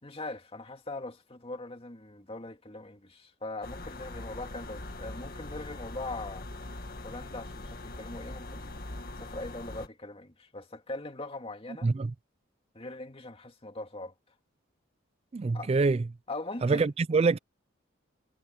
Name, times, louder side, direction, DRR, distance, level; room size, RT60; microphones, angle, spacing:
voice 1, 0.0-6.5 7.0-8.8 9.2-11.9 12.7-14.1 15.5-15.7 16.3-16.9, left 2 dB, 30° left, 2.2 m, -41 dB
sound 1, 3.6-9.9, left 2 dB, 50° left, 1.8 m, -42 dB
voice 2, 15.3-16.0 16.6-17.4, right 4 dB, 30° right, 0.3 m, -25 dB
head